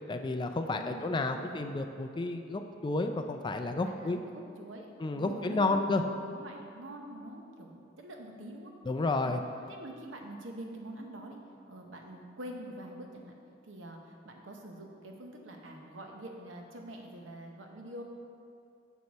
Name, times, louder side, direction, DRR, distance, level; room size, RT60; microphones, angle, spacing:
voice 1, 0.1-4.2 5.0-6.0 8.8-9.4, left 3 dB, 25° left, 6 dB, 0.3 m, -31 dB
voice 2, 0.7-1.6 3.7-8.7 9.2-9.4 9.7-11.4 11.7-13.3 13.6-18.0, right 1 dB, 90° right, 2 dB, 0.9 m, -45 dB
6.5 x 6.2 x 4.1 m, 2.5 s
head